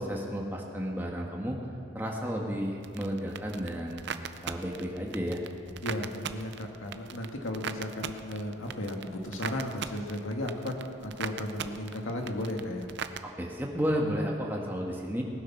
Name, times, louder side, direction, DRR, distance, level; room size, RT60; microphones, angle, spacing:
voice 1, 0.0-1.6 1.9-4.0 4.4-5.4 13.2-15.2, equal, 10° right, -1 dB, 1.5 m, -32 dB
sound 1, 2.8-13.2, right 6 dB, 55° right, 0.5 m, -40 dB
voice 2, 5.8-12.9, left 1 dB, 80° left, 2 dB, 1.9 m, -35 dB
19.0 x 9.6 x 6.0 m, 2.5 s
head